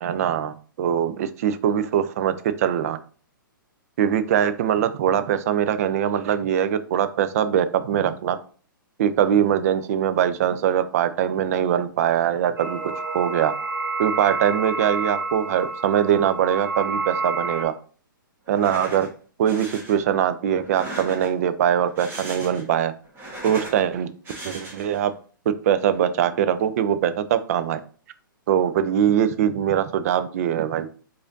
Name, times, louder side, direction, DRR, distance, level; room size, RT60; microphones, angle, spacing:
voice 1, 0.0-3.0 4.0-8.4 9.0-12.8 13.1-13.5 14.0-17.7 18.5-19.1 19.4-22.9 23.4-24.1 24.4-25.1 25.5-27.8 28.5-30.9, right 9 dB, 45° right, 12 dB, 0.4 m, -22 dB
sound 1, 12.6-17.6, right 3 dB, 85° right, 1.0 m, -29 dB
sound 2, 18.5-19.1 19.5-20.0 20.6-21.5 21.9-22.7 23.0-23.8 24.2-25.0, right 1 dB, 20° right, 1.2 m, -37 dB
4.7 x 2.5 x 2.6 m, 0.41 s
figure-of-eight pair, 125°, 11 cm